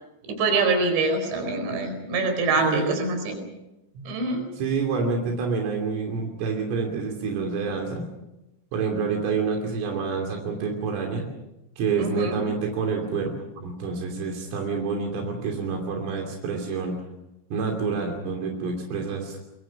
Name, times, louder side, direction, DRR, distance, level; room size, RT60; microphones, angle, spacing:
voice 1, 0.3-3.4 4.0-4.4 12.0-12.4, right 3 dB, 65° right, 6 dB, 6.7 m, -25 dB
voice 2, 2.6-3.0 4.0-8.1 8.7-11.3 11.8-13.3 13.6-17.0 17.5-19.4, right 5 dB, 85° right, 2 dB, 5.6 m, -28 dB
26.0 x 23.0 x 6.0 m, 0.94 s
omnidirectional pair, 5.7 m